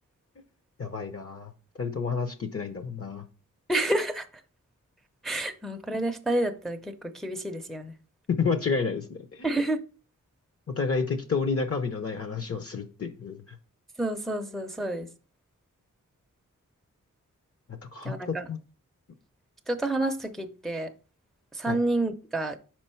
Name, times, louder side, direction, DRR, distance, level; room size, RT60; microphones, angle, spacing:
voice 1, 0.8-1.5 1.8-3.3 8.3-9.5 10.7-13.5 17.9-18.6 21.7-21.8, left 5 dB, 45° left, 0.7 m, -30 dB
voice 2, 3.7-4.3 5.2-7.9 9.4-9.8 14.0-15.1 18.0-18.5 19.7-20.9 21.5-22.6, right 2 dB, ahead, 0.5 m, -29 dB
5.4 x 4.5 x 4.4 m
wide cardioid pair, 100°, 31 cm